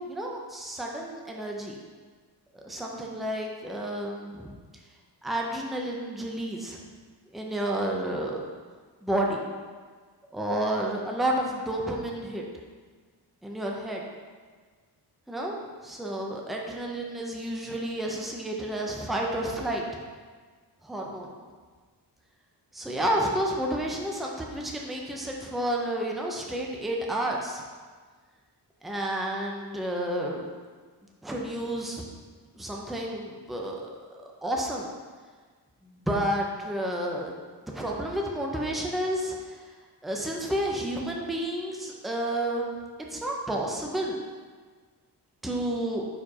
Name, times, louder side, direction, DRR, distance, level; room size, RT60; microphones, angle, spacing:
voice 1, 0.1-1.7 2.5-4.5 5.2-6.8 7.3-8.4 9.0-9.4 10.3-12.4 13.4-14.0 15.3-15.6 15.8-19.8 20.8-21.3 22.7-27.6 28.8-30.4 31.2-32.0 32.6-34.9 35.8-37.3 37.7-39.7 40.0-42.8 43.1-44.2 45.4-46.1, right 1 dB, ahead, -1 dB, 0.5 m, -30 dB
4.7 x 4.3 x 4.8 m, 1.5 s
wide cardioid pair, 170°, 41 cm